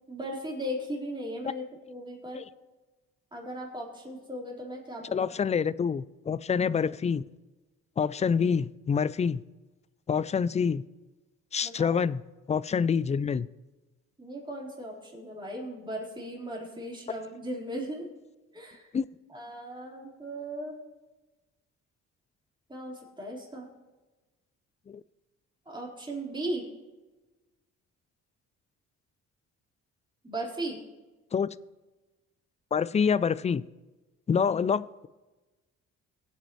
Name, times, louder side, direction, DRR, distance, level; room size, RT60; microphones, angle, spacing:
voice 1, 0.1-2.4 3.3-5.3 11.6-12.0 14.2-18.1 18.5-18.9 19.3-20.8 22.7-23.7 25.7-26.7 30.2-30.8, right 1 dB, 15° right, -3 dB, 4.2 m, -37 dB
voice 2, 5.1-7.2 8.0-9.4 10.1-10.8 11.5-12.2 12.5-13.5 18.9-19.1 24.9-25.0 31.3-31.5 32.7-33.6 34.3-35.1, left 6 dB, 25° left, 19 dB, 0.4 m, -26 dB
23.0 x 8.4 x 3.1 m, 1.2 s
cardioid pair, 90°, 30 cm